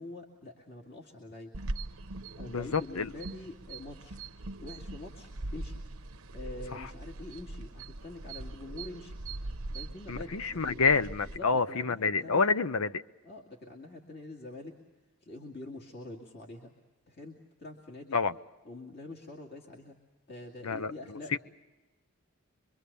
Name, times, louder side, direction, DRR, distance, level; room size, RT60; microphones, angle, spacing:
voice 1, 0.0-1.5 2.3-4.2 4.6-5.8 6.3-9.2 9.7-10.9 11.4-12.5 13.2-14.8 15.2-16.7 17.1-18.2 18.6-20.0 20.3-21.4, left 2 dB, 45° left, 0 dB, 2.3 m, -45 dB
sound 1, 1.5-11.4, right 2 dB, 80° right, 0.9 m, -41 dB
voice 2, 2.5-3.1 10.1-13.0 18.1-18.3 20.6-20.9 21.3-21.4, left 4 dB, 80° left, 14 dB, 0.8 m, -28 dB
25.0 x 24.5 x 6.9 m, 1.1 s
head